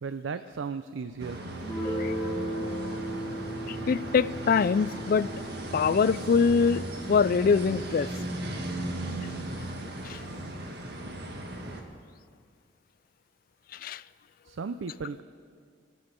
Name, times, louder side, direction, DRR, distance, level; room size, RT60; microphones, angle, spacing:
voice 1, 0.0-1.5 14.4-15.2, right 5 dB, 85° right, 11 dB, 0.5 m, -35 dB
sound 1, 1.2-11.8, right 1 dB, 55° right, 1.6 m, -37 dB
Guitar, 1.6-7.1, right 1 dB, 5° left, 3.5 m, -36 dB
voice 2, 3.7-5.3 5.7-8.1 10.0-10.2 13.7-14.0, left 5 dB, 50° left, 18 dB, 0.3 m, -24 dB
25.0 x 8.5 x 5.2 m, 2.1 s
head